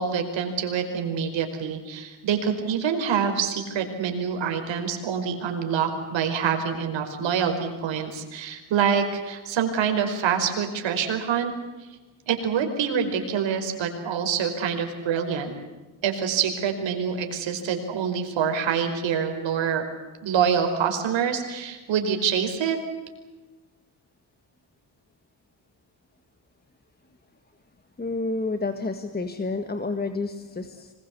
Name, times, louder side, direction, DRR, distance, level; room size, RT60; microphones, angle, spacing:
voice 1, 0.0-11.5 12.3-15.5 16.0-19.8 20.2-22.8, right 7 dB, 85° right, 5 dB, 5.0 m, -26 dB
voice 2, 28.0-30.9, left 3 dB, 20° left, 8 dB, 1.8 m, -29 dB
26.0 x 21.5 x 8.4 m, 1.2 s
cardioid pair, 110°, 44 cm